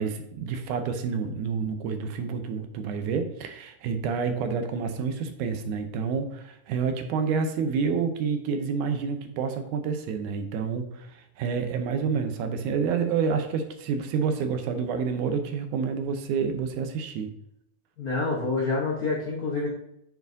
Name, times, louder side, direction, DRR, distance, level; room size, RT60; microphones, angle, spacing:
voice 1, 0.0-17.3, right 6 dB, 80° right, 7 dB, 2.1 m, -28 dB
voice 2, 18.0-19.7, left 3 dB, 70° left, -5 dB, 0.8 m, -27 dB
8.0 x 4.7 x 2.6 m, 0.78 s
omnidirectional pair, 3.6 m